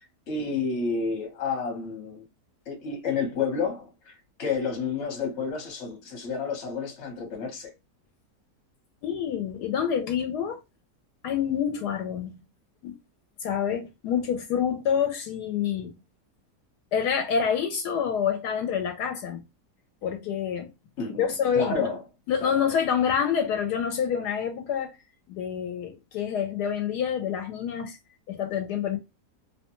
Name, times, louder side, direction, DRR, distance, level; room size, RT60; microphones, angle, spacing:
voice 1, 0.3-2.3 2.7-4.1 4.4-7.7 21.0-21.3 21.5-22.0 22.4-22.6, left 5 dB, 50° left, 1.1 m, -30 dB
voice 2, 9.0-10.6 11.2-12.3 12.8-13.0 13.4-15.9 16.9-19.4 20.0-20.7 21.2-21.9 22.3-25.0 25.3-28.0 28.3-29.0, left 7 dB, 80° left, 1.1 m, -27 dB
2.8 x 2.2 x 2.8 m
omnidirectional pair, 1.8 m